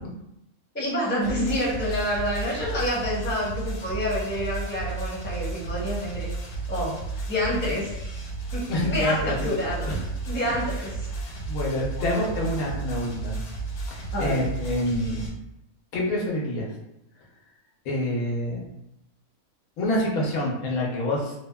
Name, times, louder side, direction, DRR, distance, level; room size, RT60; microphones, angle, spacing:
voice 1, 0.7-6.3 6.7-7.0 7.3-8.0 8.5-11.1 12.0-12.1 14.1-14.5, left 1 dB, 10° left, -7 dB, 0.6 m, -28 dB
sound 1, 1.2-15.3, right 3 dB, 60° left, 0.9 m, -33 dB
voice 2, 8.7-9.5 9.9-10.0 11.3-13.4 13.8-15.3 15.9-16.7 17.8-18.7 19.8-21.3, left 1 dB, 85° left, -3 dB, 1.2 m, -27 dB
3.3 x 2.1 x 2.2 m, 0.85 s
omnidirectional pair, 1.5 m